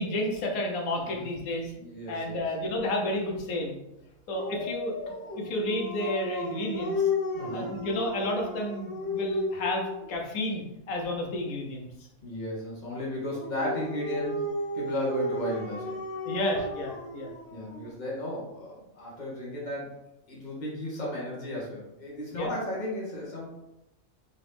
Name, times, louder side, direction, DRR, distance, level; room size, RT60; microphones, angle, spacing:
voice 1, 0.0-1.7 2.1-3.8 4.3-4.9 5.3-7.1 7.5-11.9 16.2-17.3 22.3-22.5, left 1 dB, 90° left, 1 dB, 1.3 m, -31 dB
voice 2, 1.8-2.4 7.3-7.7 12.2-14.4 14.7-16.0 17.5-19.9 20.3-23.6, left 1 dB, 35° left, -5 dB, 1.4 m, -34 dB
Dog, 4.3-10.2 13.3-17.9, left 2 dB, 65° left, 1.3 m, -34 dB
4.1 x 2.9 x 3.4 m, 0.90 s
omnidirectional pair, 1.4 m